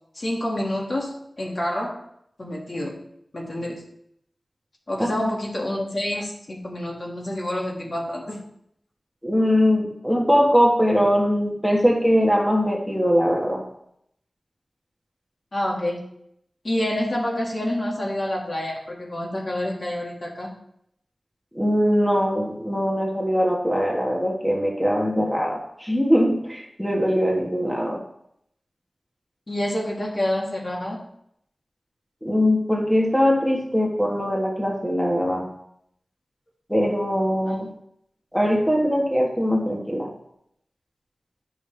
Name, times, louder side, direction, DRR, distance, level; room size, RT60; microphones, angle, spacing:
voice 1, 0.2-2.0 2.4-2.9 3.3-3.8 4.9-8.4 15.5-16.0 16.6-20.6 29.5-31.0 37.5-37.6 38.4-38.5, left 1 dB, 45° left, -2 dB, 2.0 m, -28 dB
voice 2, 9.2-13.7 21.5-28.0 32.2-35.5 36.7-37.7 38.3-40.1, equal, 5° left, -1 dB, 1.5 m, -21 dB
12.0 x 5.5 x 3.4 m, 0.73 s
wide cardioid pair, 85°, 0 cm